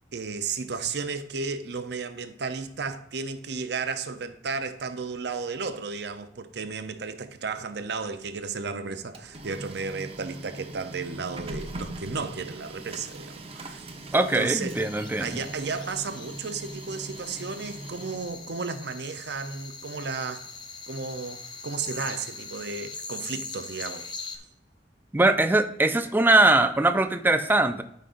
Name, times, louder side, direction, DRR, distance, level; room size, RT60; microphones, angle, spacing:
voice 1, 0.1-13.8 14.3-14.8 15.2-20.5 20.9-24.1, right 4 dB, 65° right, 0.7 m, -33 dB
Printer, 8.9-18.6, right 1 dB, 35° right, 0.8 m, -41 dB
voice 2, 14.1-15.4 25.1-27.8, right 2 dB, 10° right, 0.5 m, -21 dB
sound 1, 14.7-24.4, left 4 dB, 25° left, 0.7 m, -41 dB
12.5 x 5.3 x 2.5 m
head